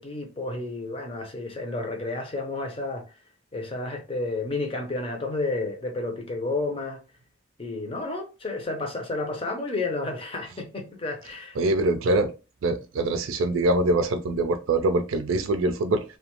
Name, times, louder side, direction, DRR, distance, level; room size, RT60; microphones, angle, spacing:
voice 1, 0.0-3.0 3.5-7.0 7.6-11.6, left 2 dB, 25° left, 0.5 m, -31 dB
voice 2, 11.6-12.3 12.6-16.0, right 2 dB, 85° right, 0.4 m, -24 dB
2.5 x 2.2 x 2.9 m
head